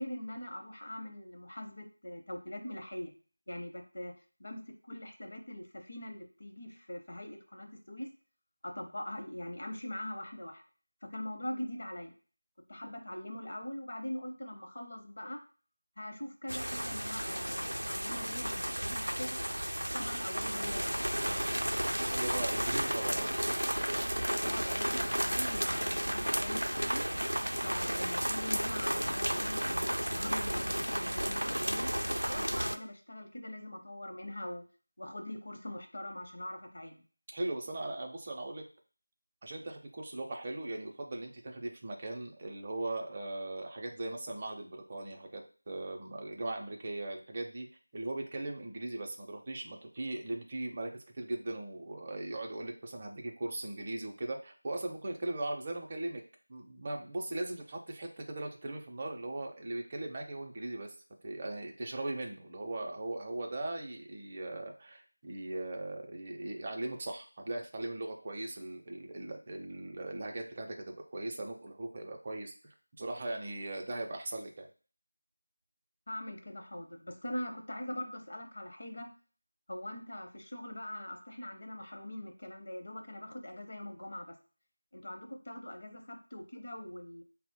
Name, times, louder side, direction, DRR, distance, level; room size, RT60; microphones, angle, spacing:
voice 1, 0.0-3.1 3.5-4.1 4.4-8.1 8.6-10.6 11.1-12.1 12.7-15.4 16.0-19.4 19.9-21.0 24.4-27.1 27.6-31.9 32.3-34.6 35.0-37.0 76.1-79.1 79.7-84.4 84.9-87.2, left 1 dB, 55° left, 3 dB, 0.7 m, -42 dB
sound 1, 16.5-32.8, equal, 90° right, 0.4 m, -33 dB
voice 2, 22.1-23.3 37.3-38.6 39.4-47.7 47.9-56.2 56.5-60.9 61.2-72.5 73.0-74.7, right 2 dB, 25° right, 1 dB, 0.5 m, -39 dB
4.0 x 2.0 x 4.4 m, 0.39 s
figure-of-eight pair, 170°, 0 cm